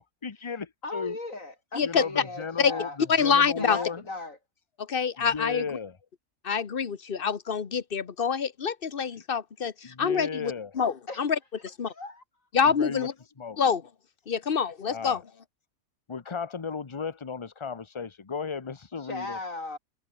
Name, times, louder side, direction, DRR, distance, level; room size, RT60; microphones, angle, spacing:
voice 1, 0.0-1.2 1.8-2.9 3.2-4.0 5.2-5.9 9.8-10.7 12.8-13.1 13.4-13.6 14.9-15.2 16.1-19.4, left 5 dB, 25° left, 0.8 m, -35 dB
voice 2, 0.8-3.0 3.6-4.4 11.1-11.3 11.9-12.2 19.0-19.8, left 2 dB, 60° left, 5.4 m, -37 dB
voice 3, 3.1-3.8 4.8-5.8 6.4-11.9 12.5-13.1 13.6-13.8 14.3-15.2, left 6 dB, 40° left, 1.3 m, -26 dB
omnidirectional pair, 1.6 m